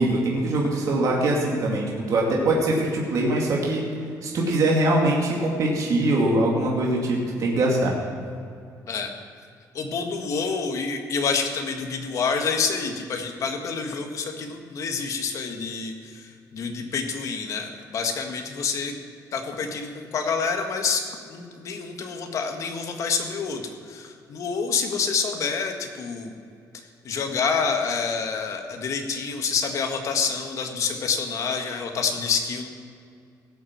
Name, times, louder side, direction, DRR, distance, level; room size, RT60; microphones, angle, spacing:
voice 1, 0.0-3.8 4.2-7.9, right 1 dB, 55° right, -2 dB, 2.3 m, -22 dB
voice 2, 9.7-18.9 19.3-21.0 21.3-26.3 27.0-32.7, left 5 dB, 50° left, 4 dB, 1.6 m, -27 dB
17.0 x 7.2 x 7.4 m, 2.3 s
cardioid pair, 165°, 7 cm